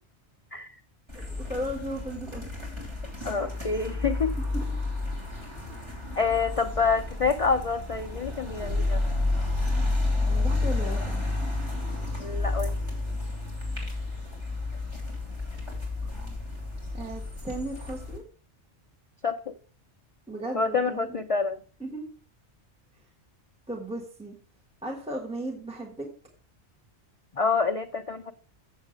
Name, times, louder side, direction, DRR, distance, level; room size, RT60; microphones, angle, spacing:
voice 1, 1.1-2.4 4.5-4.7 10.2-11.2 16.1-16.4 16.9-18.2 20.3-21.2 21.8-22.1 23.7-24.3 24.8-26.1, right 1 dB, 5° right, 0 dB, 1.3 m, -36 dB
sound 1, 1.1-18.2, left 2 dB, 25° right, 3.1 m, -31 dB
voice 2, 3.2-4.3 6.2-9.0 12.2-12.7 19.2-19.5 20.5-21.6 27.3-28.3, left 4 dB, 55° left, 5 dB, 0.4 m, -27 dB
7.3 x 7.3 x 5.0 m, 0.42 s
omnidirectional pair, 1.2 m